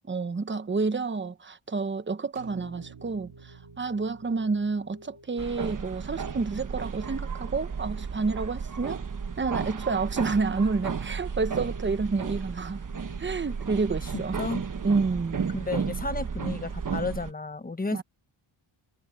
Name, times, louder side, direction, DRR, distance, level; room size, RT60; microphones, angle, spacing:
voice 1, 0.0-9.0 9.4-12.8 13.2-14.4 14.8-15.5 17.9-18.0, right 4 dB, 25° right, 0.9 m, -29 dB
sound 1, 2.4-6.6, right 8 dB, 90° right, 4.7 m, -51 dB
sound 2, 2.6-17.0, left 3 dB, 75° left, 6.1 m, -56 dB
sound 3, 5.4-17.3, right 6 dB, 40° right, 1.2 m, -33 dB
voice 2, 14.1-14.6 15.5-18.0, left 3 dB, 15° left, 1.1 m, -32 dB
wide cardioid pair, 140°, 50 cm